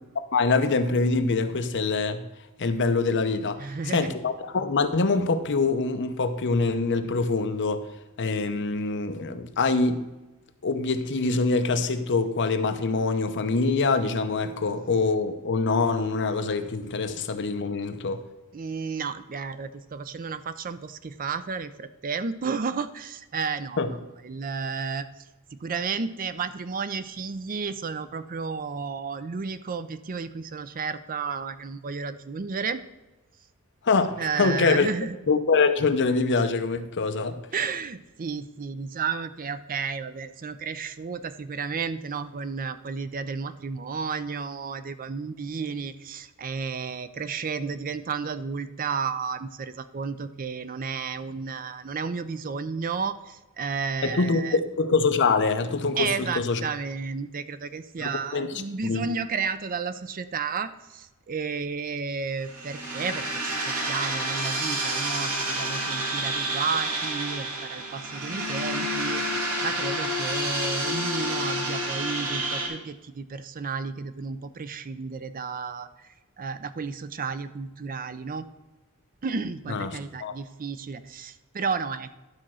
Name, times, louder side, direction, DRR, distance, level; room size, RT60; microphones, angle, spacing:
voice 1, 0.3-2.2 2.6-7.8 8.2-10.0 10.6-18.2 23.8-23.9 33.8-34.9 35.3-37.4 54.0-56.6 58.0-58.5 58.8-59.1 79.7-80.4, left 4 dB, 55° left, 8 dB, 0.8 m, -24 dB
voice 2, 3.6-4.1 18.5-24.0 24.2-25.1 25.5-32.8 34.2-35.2 37.5-54.6 56.0-76.1 76.4-78.5 79.2-82.1, right 5 dB, 40° right, 13 dB, 0.5 m, -32 dB
sound 1, 62.4-72.7, right 1 dB, 90° right, 2.1 m, -29 dB
11.5 x 4.3 x 6.2 m, 1.1 s
head